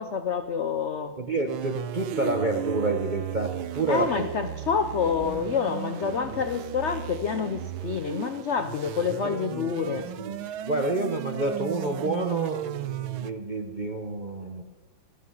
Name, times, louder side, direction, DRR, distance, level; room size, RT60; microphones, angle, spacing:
voice 1, 0.0-1.2 3.9-10.1, left 6 dB, 85° left, 9 dB, 0.6 m, -28 dB
voice 2, 1.2-4.3 9.2-14.6, right 2 dB, 50° right, 3 dB, 0.5 m, -29 dB
sound 1, 1.5-13.3, right 12 dB, 90° right, 1.5 m, -35 dB
15.0 x 13.5 x 5.6 m, 1.2 s
omnidirectional pair, 2.2 m